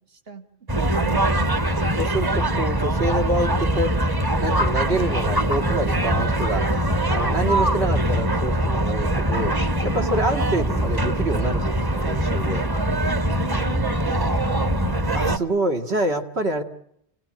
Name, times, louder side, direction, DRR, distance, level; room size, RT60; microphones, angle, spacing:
voice 1, 0.1-1.9 2.3-2.6 9.9-10.3 13.2-15.5, right 6 dB, 65° right, 7 dB, 2.1 m, -38 dB
sound 1, 0.7-15.4, right 1 dB, 20° right, 1.0 m, -22 dB
voice 2, 2.0-4.0 4.4-6.7 7.1-9.5 9.8-12.7 15.1-16.6, right 1 dB, 85° right, 4 dB, 2.6 m, -26 dB
29.0 x 17.5 x 8.9 m, 0.77 s
omnidirectional pair, 1.1 m